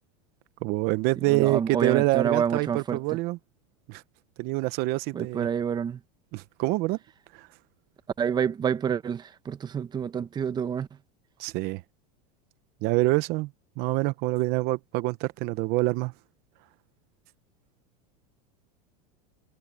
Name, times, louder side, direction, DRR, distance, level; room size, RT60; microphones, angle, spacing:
voice 1, 0.6-3.4 3.9-4.0 4.4-5.5 6.3-7.0 7.3-7.5 11.4-11.8 12.8-13.5 13.8-16.1, right 21 dB, 50° right, 0.9 m, -26 dB
voice 2, 1.3-3.0 5.1-6.0 8.2-10.9, right 7 dB, 20° right, 1.1 m, -28 dB
supercardioid pair, 135°, 21 cm